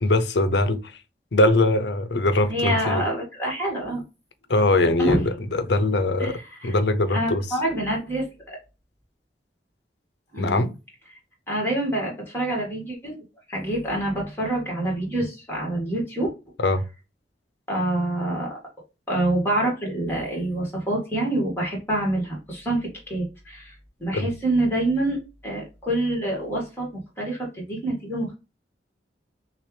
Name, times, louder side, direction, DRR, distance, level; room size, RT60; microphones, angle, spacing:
voice 1, 0.0-0.8 1.3-3.0 4.5-7.4 10.4-10.7 16.6-16.8 24.1-24.3, left 2 dB, 75° left, 0.7 m, -21 dB
voice 2, 2.5-4.0 5.0-5.2 6.2-6.8 7.1-8.6 10.3-10.6 11.5-13.1 13.5-16.3 17.7-18.6 19.1-23.7 24.0-26.9 27.2-28.4, right 1 dB, 15° left, 2.1 m, -26 dB
6.1 x 2.5 x 3.2 m
head